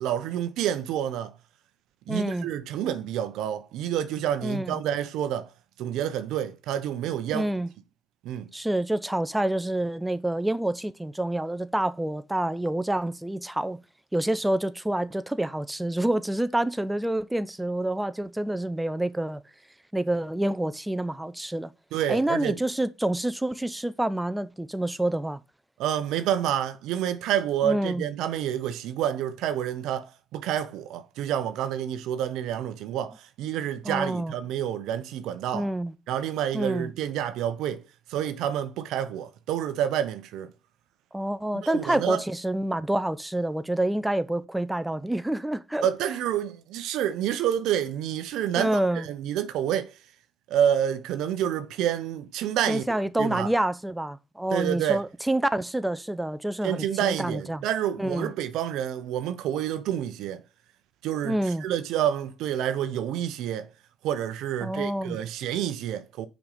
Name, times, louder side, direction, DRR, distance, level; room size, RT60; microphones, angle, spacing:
voice 1, 0.0-1.3 2.1-5.5 5.8-7.5 8.2-8.5 21.9-22.6 25.8-35.7 36.1-37.8 38.1-40.5 41.6-42.2 45.8-49.9 50.5-53.5 54.5-55.0 56.6-60.4 61.0-63.7 64.0-66.3, right 10 dB, 80° right, 0.7 m, -28 dB
voice 2, 2.1-2.5 4.4-4.8 7.3-7.7 8.5-13.8 14.1-19.4 19.9-21.7 22.1-25.4 27.6-28.1 33.8-34.3 35.5-35.9 36.5-36.9 41.1-45.9 48.6-49.1 52.7-57.6 58.0-58.3 61.2-61.6 64.6-65.2, right 1 dB, 10° right, 0.7 m, -27 dB
5.9 x 5.2 x 6.7 m
supercardioid pair, 55°, 0 cm